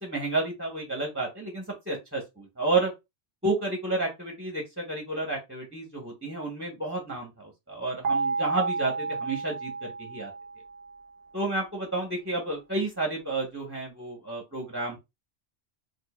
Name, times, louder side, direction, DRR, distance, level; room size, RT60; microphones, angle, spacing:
voice 1, 0.0-2.9 3.4-10.3 11.3-15.0, right 2 dB, 10° right, -1 dB, 1.0 m, -31 dB
sound 1, 8.0-11.0, right 4 dB, 45° right, 0.7 m, -31 dB
4.6 x 2.7 x 2.3 m, 0.22 s
omnidirectional pair, 1.1 m